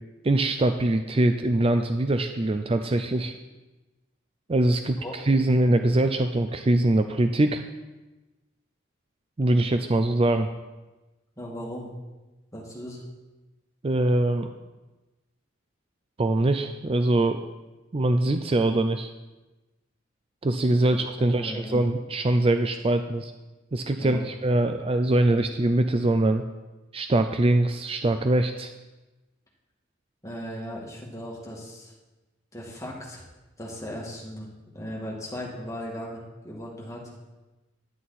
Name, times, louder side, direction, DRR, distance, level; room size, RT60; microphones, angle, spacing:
voice 1, 0.2-3.3 4.5-5.0 5.3-7.6 9.4-10.5 13.8-14.5 16.2-17.4 17.9-19.1 20.4-23.3 23.7-26.4 26.9-28.7, right 2 dB, 30° right, 7 dB, 0.5 m, -23 dB
voice 2, 11.4-11.9 12.5-13.0 20.8-21.9 24.0-24.3 30.2-31.9 32.5-33.3 33.6-37.1, equal, 15° left, -4 dB, 2.3 m, -37 dB
10.5 x 9.4 x 4.2 m, 1.1 s
head